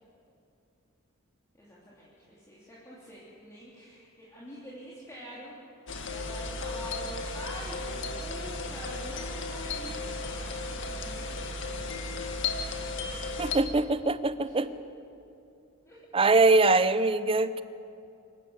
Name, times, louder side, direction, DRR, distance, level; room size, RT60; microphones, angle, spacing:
voice 1, 1.5-5.6 6.0-12.1 14.4-14.7 15.9-16.0, equal, 15° left, -7 dB, 3.3 m, -46 dB
sound 1, 5.9-13.6, left 3 dB, 60° left, 1.8 m, -35 dB
voice 2, 13.4-14.7 16.1-17.6, right 3 dB, 25° right, 14 dB, 0.6 m, -23 dB
25.0 x 13.5 x 8.2 m, 2.7 s
head